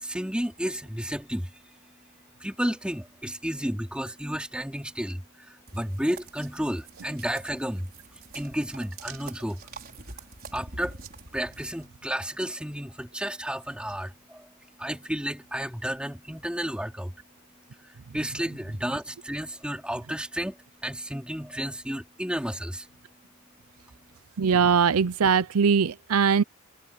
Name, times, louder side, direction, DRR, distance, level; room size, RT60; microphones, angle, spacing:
voice 1, 0.0-1.5 2.4-7.9 8.3-9.6 10.5-11.0 11.3-14.5 14.8-17.1 18.1-20.6 20.8-22.9, equal, 5° right, 3.8 m, -32 dB
sound 1, 5.7-11.9, right 3 dB, 45° right, 5.4 m, -45 dB
voice 2, 24.4-26.4, right 6 dB, 75° right, 0.6 m, -21 dB
head